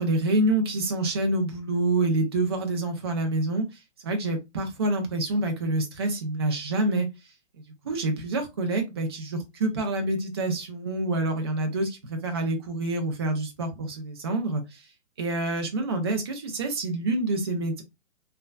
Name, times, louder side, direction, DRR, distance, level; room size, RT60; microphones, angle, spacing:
voice 1, 0.0-3.7 4.0-7.1 7.8-14.8 15.2-17.8, right 2 dB, 25° right, 0.3 m, -27 dB
3.1 x 2.1 x 2.3 m
hypercardioid pair, 140°, 35 cm